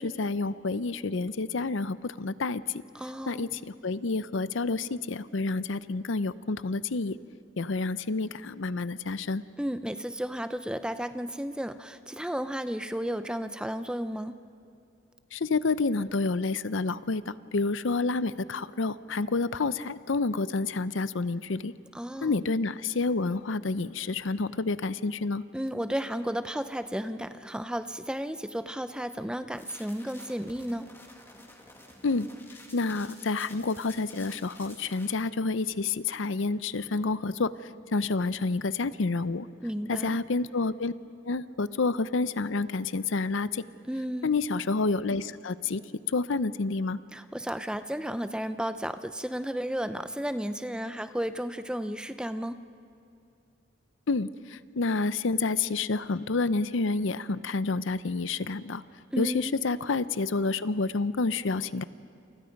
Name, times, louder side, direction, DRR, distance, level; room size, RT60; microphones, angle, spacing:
voice 1, 0.0-2.8 3.3-7.2 7.6-9.4 15.3-21.7 22.2-25.4 32.0-32.3 32.7-37.5 37.9-39.5 39.9-40.9 41.2-43.6 44.2-45.8 46.1-47.0 54.1-58.8 59.2-61.8, left 3 dB, 70° left, 15 dB, 0.6 m, -29 dB
voice 2, 2.9-3.5 9.6-14.4 21.9-22.4 25.5-30.9 39.6-40.2 43.9-44.3 47.1-52.6 59.1-59.5, equal, 5° right, 10 dB, 0.6 m, -33 dB
sound 1, 29.6-35.1, left 2 dB, 10° left, 2.3 m, -51 dB
29.0 x 28.5 x 5.3 m, 2.7 s
head